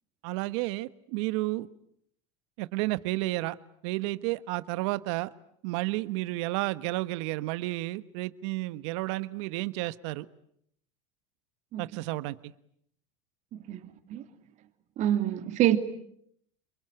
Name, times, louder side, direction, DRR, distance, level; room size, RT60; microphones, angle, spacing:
voice 1, 0.2-1.7 2.6-3.6 3.8-5.3 5.6-10.3 11.8-12.4, right 19 dB, 70° right, 1.2 m, -31 dB
voice 2, 11.7-12.0 13.5-14.2 15.0-15.8, right 12 dB, 50° right, 2.8 m, -27 dB
28.0 x 23.0 x 9.2 m
supercardioid pair, 105°, 16 cm